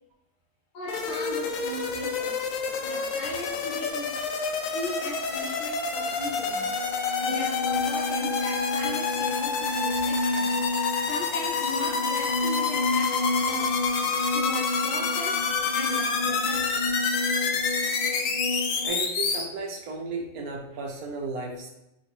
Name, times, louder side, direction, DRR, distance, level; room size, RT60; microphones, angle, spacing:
voice 1, 0.7-2.4 2.8-4.2 4.7-6.7 7.2-10.6 11.1-13.9 14.3-17.1, left 2 dB, 90° left, -1 dB, 1.4 m, -37 dB
sound 1, 0.9-19.4, left 5 dB, 65° left, 0.9 m, -28 dB
sound 2, 5.9-18.9, left 2 dB, 45° left, 0.5 m, -31 dB
voice 2, 18.8-21.7, right 4 dB, 70° right, 1 dB, 1.3 m, -34 dB
6.1 x 2.6 x 2.9 m, 0.87 s
omnidirectional pair, 1.7 m